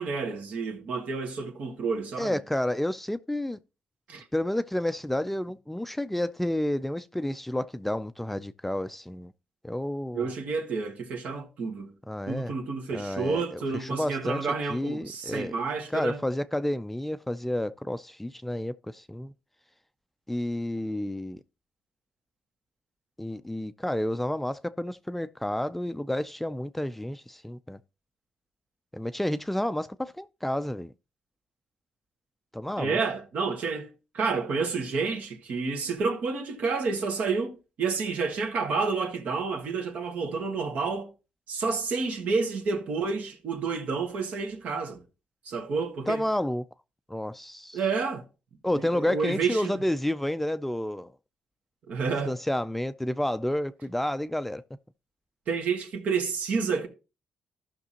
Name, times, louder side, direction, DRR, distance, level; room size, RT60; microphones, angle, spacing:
voice 1, 0.0-2.4 4.1-4.3 10.1-11.9 12.3-16.2 32.8-41.1 41.5-45.0 45.5-46.2 47.7-48.2 48.7-49.8 51.9-52.3 55.5-56.9, right 4 dB, 75° right, 1.9 m, -30 dB
voice 2, 2.2-3.6 4.3-9.3 9.6-10.3 12.1-12.5 12.9-15.6 15.9-19.3 20.3-21.4 23.2-27.8 28.9-30.9 32.5-33.0 46.1-46.6 47.1-47.8 48.6-51.1 52.3-54.6, left 1 dB, 5° left, 0.4 m, -30 dB
15.0 x 5.9 x 2.9 m
cardioid pair, 105°, 3 cm